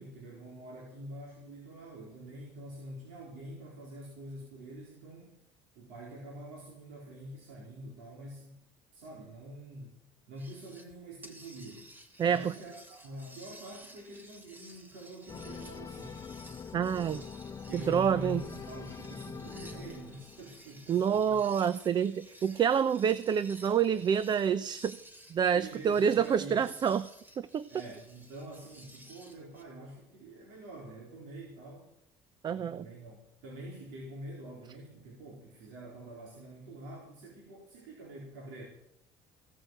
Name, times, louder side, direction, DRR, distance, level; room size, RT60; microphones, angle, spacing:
voice 1, 0.0-5.4 5.8-8.6 8.9-10.0 10.3-11.9 12.2-16.2 17.7-21.4 25.5-26.7 27.7-31.9 32.5-38.6, right 1 dB, 85° right, -3 dB, 4.1 m, -46 dB
sound 1, 10.4-10.9 11.2-29.6, right 1 dB, 15° right, 3.1 m, -55 dB
voice 2, 12.2-12.5 16.7-17.2 17.7-18.4 20.9-25.0 25.3-27.1 27.4-27.7 32.4-32.9, right 8 dB, 40° right, 15 dB, 0.7 m, -27 dB
sound 2, 15.3-20.8, left 6 dB, 30° left, 1.0 m, -44 dB
16.5 x 7.2 x 7.9 m, 0.82 s
supercardioid pair, 90°, 11 cm